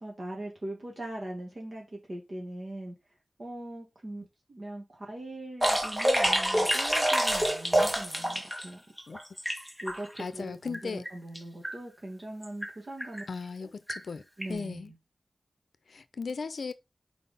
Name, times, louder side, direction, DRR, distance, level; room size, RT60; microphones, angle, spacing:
voice 1, 0.0-2.9 3.4-8.8 9.8-13.2 13.6-13.7 14.4-15.0, right 1 dB, 50° right, 1.9 m, -41 dB
sound 1, 5.6-8.6 9.0-10.2 10.7-10.8 11.0-11.4 11.6-11.7 12.4-12.7 13.0-13.2 13.9-14.0 14.4-14.5, equal, 10° right, 1.3 m, -27 dB
voice 2, 10.2-11.0 13.3-14.2 14.5-14.9 15.9-16.7, left 4 dB, 85° left, 0.6 m, -37 dB
4.7 x 4.2 x 5.3 m
wide cardioid pair, 100°, 0 cm